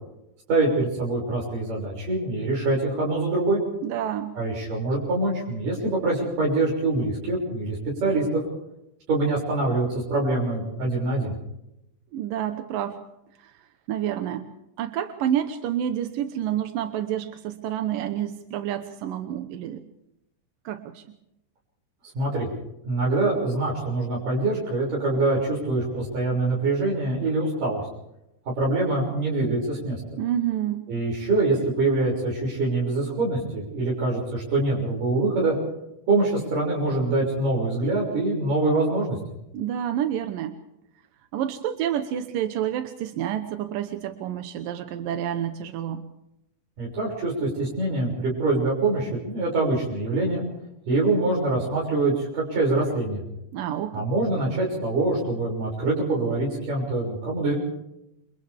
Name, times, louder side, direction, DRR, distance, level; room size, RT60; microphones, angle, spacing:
voice 1, 0.5-3.6 4.4-8.4 9.1-11.3 22.2-22.5 22.9-27.8 28.6-30.2 30.9-35.5 36.1-39.2 46.8-50.4 50.9-53.2 53.9-57.5, right 2 dB, 75° right, -4 dB, 8.0 m, -24 dB
voice 2, 3.8-4.3 12.1-13.0 13.4-13.5 13.9-14.5 14.8-19.8 20.7-21.0 30.2-30.9 39.5-40.6 41.3-46.0 53.5-54.1, right 10 dB, 90° right, 7 dB, 2.8 m, -29 dB
29.0 x 28.5 x 3.6 m, 0.85 s
omnidirectional pair, 3.8 m